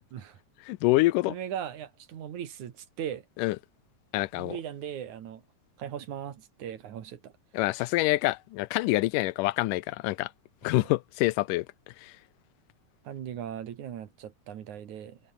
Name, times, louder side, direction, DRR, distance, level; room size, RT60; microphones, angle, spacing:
voice 1, 0.7-1.3 3.4-3.6 4.1-4.6 7.5-10.3 10.6-11.7 12.0-12.1, left 19 dB, 90° left, 2.2 m, -26 dB
voice 2, 1.3-3.2 4.4-5.4 5.8-7.3 10.6-10.9 13.0-15.2, right 9 dB, 65° right, 3.1 m, -38 dB
omnidirectional pair, 3.7 m